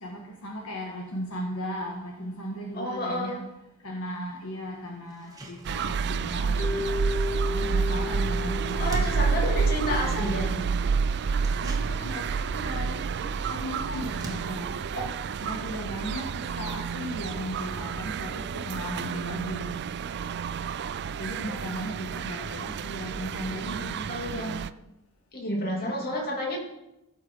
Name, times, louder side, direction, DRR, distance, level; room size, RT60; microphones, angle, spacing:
voice 1, 0.0-3.4 3.8-6.9 7.5-9.1 9.4-9.6 9.9-10.7 11.6-14.7 15.4-19.8 21.2-24.1 25.7-26.2, equal, 70° left, 0 dB, 1.5 m, -37 dB
voice 2, 2.7-3.4 8.8-10.5 14.9-15.0 23.8-24.6 25.3-26.6, equal, 45° left, -1 dB, 2.7 m, -30 dB
sound 1, 4.1-4.2 4.6-4.7 5.1-16.7, right 1 dB, 15° right, 1.5 m, -49 dB
sound 2, 5.6-24.7, right 5 dB, 50° right, 0.4 m, -29 dB
Mallet percussion, 6.6-10.7, left 3 dB, 10° left, 0.7 m, -35 dB
16.0 x 6.8 x 4.7 m, 0.93 s
head